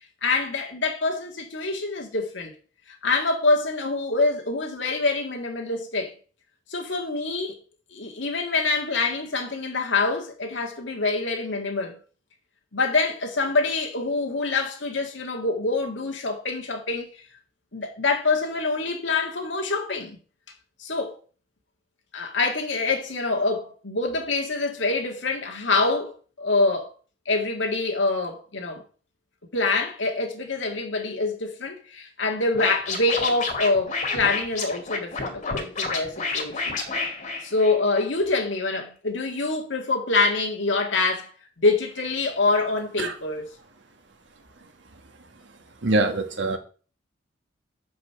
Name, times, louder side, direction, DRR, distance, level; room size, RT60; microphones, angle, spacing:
voice 1, 0.2-2.5 3.0-6.1 6.7-7.6 7.9-12.0 12.7-17.1 17.7-20.2 20.8-21.2 22.1-26.9 27.3-28.8 29.5-36.8 37.4-41.3 41.6-43.5, left 3 dB, 75° left, 1.9 m, -25 dB
Scratching (performance technique), 32.5-38.0, left 4 dB, 40° left, 2.0 m, -29 dB
voice 2, 45.8-46.6, right 2 dB, 70° right, 1.3 m, -23 dB
6.3 x 5.5 x 6.8 m
head